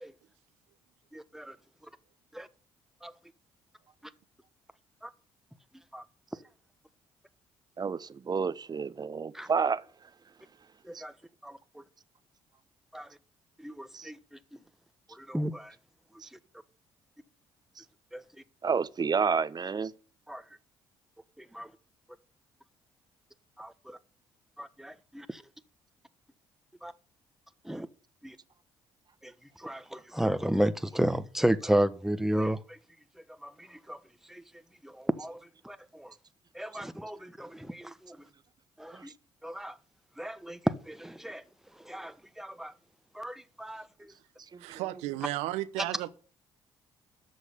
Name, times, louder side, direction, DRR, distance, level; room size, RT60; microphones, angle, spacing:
voice 1, 1.1-1.5 2.3-2.5 3.0-3.1 5.9-6.0 9.3-9.5 10.9-11.1 11.4-11.6 12.9-13.1 13.6-14.2 15.2-15.7 18.1-18.2 20.3-20.4 21.5-21.7 23.6-24.0 24.6-25.4 26.8-26.9 27.7-27.9 28.2-28.3 29.6-32.6 33.4-33.5 33.9-34.0 34.3-34.4 34.8-34.9 35.2-35.4 35.6-36.1 36.5-38.2 38.8-39.1 39.4-39.7 40.2-41.4 41.9-42.7 43.1-43.8, right 1 dB, 5° right, 1.3 m, -32 dB
voice 2, 7.8-9.8 10.9-11.0 13.9-14.1 16.2-16.3 17.8-17.9 18.6-19.9 38.9-39.1 44.5-44.6, right 5 dB, 35° right, 1.0 m, -30 dB
voice 3, 44.6-46.1, right 16 dB, 80° right, 0.9 m, -34 dB
13.0 x 6.3 x 8.6 m
hypercardioid pair, 50°, 11 cm